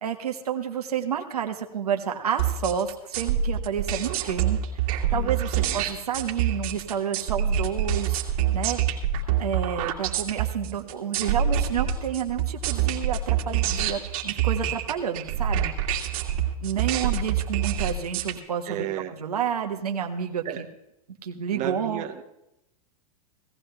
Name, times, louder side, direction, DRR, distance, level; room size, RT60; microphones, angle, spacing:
voice 1, 0.0-4.6 5.1-8.2 8.5-8.8 9.4-16.0 16.6-18.9 19.2-20.6 21.2-22.0, right 8 dB, 90° right, 3 dB, 1.4 m, -30 dB
sound 1, 2.4-18.3, right 9 dB, 65° right, 2.3 m, -26 dB
voice 2, 5.1-5.8 18.7-19.1 20.4-20.6 21.5-22.2, right 11 dB, 40° right, 4 dB, 1.4 m, -34 dB
17.5 x 14.5 x 3.4 m, 0.87 s
hypercardioid pair, 110°, 19 cm